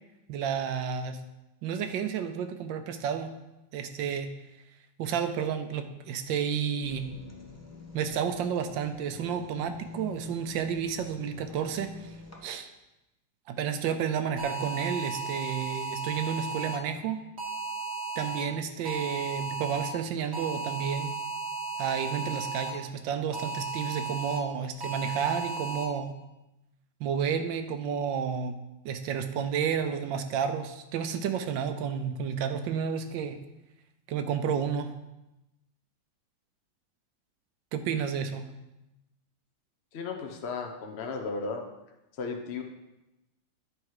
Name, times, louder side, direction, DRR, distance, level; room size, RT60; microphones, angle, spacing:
voice 1, 0.3-1.2 1.6-3.4 3.7-4.3 5.0-7.1 7.9-12.2 12.4-12.7 13.5-17.2 18.2-21.2 21.8-26.1 27.0-28.6 28.8-33.4 34.1-34.9 37.7-38.5, right 7 dB, 80° right, 8 dB, 1.3 m, -31 dB
sound 1, 6.8-12.4, left 4 dB, 15° left, 0.5 m, -46 dB
sound 2, 14.4-16.8 17.4-18.4 18.8-19.9 20.3-22.7 23.3-24.4 24.8-25.8, right 4 dB, 40° right, 1.3 m, -35 dB
voice 2, 39.9-41.7 42.2-42.6, left 4 dB, 55° left, 3 dB, 0.7 m, -35 dB
9.8 x 4.6 x 4.7 m, 0.96 s
omnidirectional pair, 2.1 m